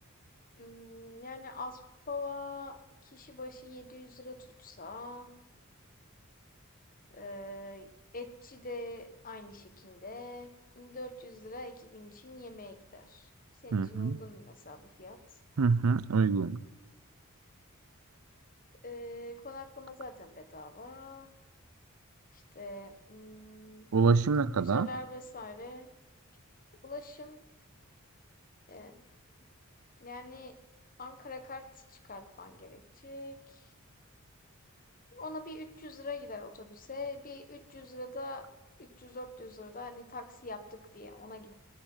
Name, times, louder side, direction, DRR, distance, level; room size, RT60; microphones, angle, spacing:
voice 1, 0.6-1.8 2.1-2.8 3.0-5.3 7.1-13.3 13.6-15.2 18.8-21.3 22.3-23.8 24.5-25.9 26.8-27.4 28.7-29.0 30.0-30.5 31.0-33.7 35.1-38.5 38.8-41.5, left 2 dB, 40° left, 9 dB, 1.4 m, -44 dB
voice 2, 13.7-14.2 15.6-16.6 23.9-24.9, right 4 dB, 85° right, 19 dB, 0.5 m, -26 dB
18.5 x 10.0 x 5.6 m, 1.1 s
head